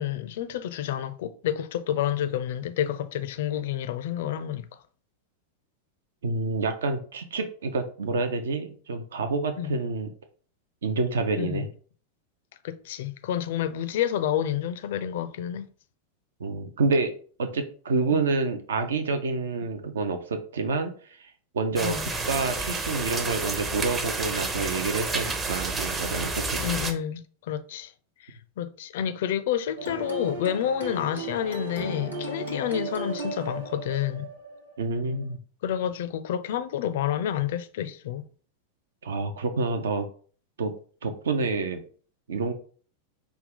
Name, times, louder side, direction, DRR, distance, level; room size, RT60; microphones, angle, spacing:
voice 1, 0.0-4.7 9.6-9.8 11.4-11.7 12.6-15.7 18.1-18.2 21.8-22.1 26.6-27.9 28.2-34.3 35.6-38.3, left 10 dB, 55° left, 0.4 m, -29 dB
voice 2, 6.2-10.1 10.8-11.7 16.4-17.1 17.4-20.9 21.2-26.6 34.8-35.4 39.0-40.1 40.6-40.7 41.0-41.8 42.3-42.5, right 3 dB, 65° right, 0.5 m, -28 dB
sound 1, 21.8-26.9, right 3 dB, 20° right, 0.6 m, -30 dB
sound 2, 29.8-35.3, right 2 dB, 85° right, 1.1 m, -36 dB
5.2 x 2.3 x 3.6 m
figure-of-eight pair, 90°, 0 cm